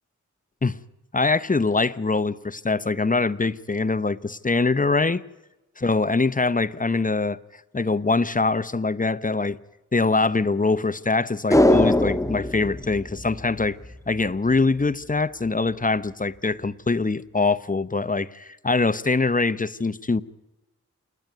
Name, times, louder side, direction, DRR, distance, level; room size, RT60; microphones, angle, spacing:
voice 1, 1.1-5.2 5.8-7.4 7.7-9.6 9.9-13.8 14.1-20.2, left 3 dB, 25° left, 0.9 m, -23 dB
sound 1, 11.5-14.0 14.3-14.4, left 1 dB, 10° left, 1.4 m, -21 dB
27.5 x 10.5 x 9.5 m
cardioid pair, 50°, 31 cm